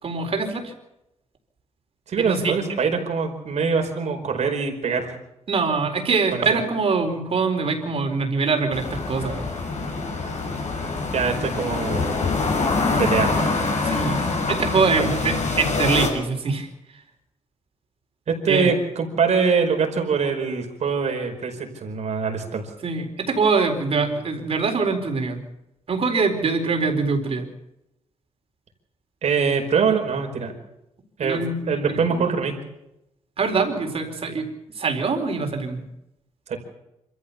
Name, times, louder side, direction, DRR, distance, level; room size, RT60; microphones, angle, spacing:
voice 1, 0.0-0.7 2.3-2.5 5.5-9.4 13.8-14.2 14.5-16.7 18.5-18.7 22.8-25.4 25.9-27.5 31.2-31.6 31.9-32.2 33.4-34.5 34.8-35.8, right 4 dB, 55° right, 5 dB, 4.4 m, -23 dB
voice 2, 2.1-5.1 6.3-6.6 11.1-12.2 13.0-13.5 14.5-14.6 14.9-15.0 18.3-22.6 29.2-30.5 31.2-32.5 36.5-36.6, right 5 dB, 70° right, 3 dB, 5.0 m, -23 dB
sound 1, 8.7-16.1, left 3 dB, 80° left, 6.6 m, -25 dB
26.0 x 14.5 x 7.1 m, 0.86 s
cardioid pair, 110°, 12 cm